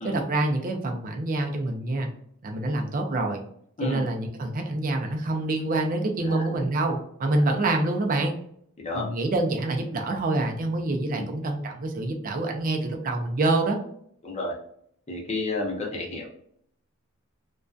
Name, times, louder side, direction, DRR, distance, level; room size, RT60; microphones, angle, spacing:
voice 1, 0.0-2.1 2.4-3.4 3.8-8.3 8.9-13.8, right 2 dB, 40° right, 3 dB, 0.4 m, -26 dB
voice 2, 6.2-6.6 8.8-9.0 11.2-11.3 14.2-14.5 15.1-16.3, left 2 dB, 30° left, -2 dB, 0.7 m, -31 dB
2.5 x 2.2 x 2.3 m, 0.67 s
head